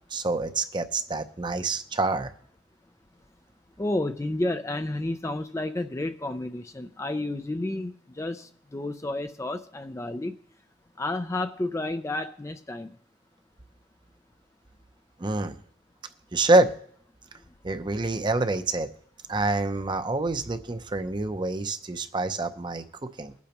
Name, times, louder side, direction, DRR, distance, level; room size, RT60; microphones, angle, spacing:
voice 1, 0.1-2.3 15.2-15.6 16.3-16.7 17.6-18.9 19.3-23.3, right 2 dB, 25° right, 9 dB, 0.6 m, -26 dB
voice 2, 3.8-10.4 11.0-12.9, left 2 dB, 15° left, 8 dB, 0.4 m, -31 dB
22.5 x 8.4 x 3.0 m, 0.62 s
head